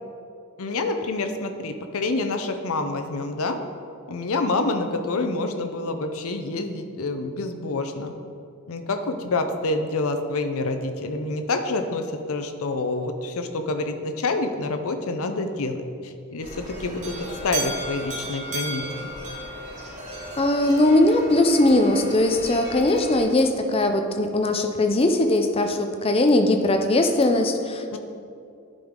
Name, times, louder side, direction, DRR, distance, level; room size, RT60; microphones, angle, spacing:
voice 1, 0.6-3.6 4.1-8.1 8.7-17.1 17.4-18.8 27.9-28.0, left 2 dB, 70° left, 7 dB, 0.6 m, -27 dB
sound 1, 16.4-23.2, right 1 dB, 35° right, 1.9 m, -35 dB
voice 2, 20.4-28.0, left 1 dB, 25° left, 6 dB, 0.4 m, -20 dB
11.0 x 5.3 x 3.7 m, 2.4 s
head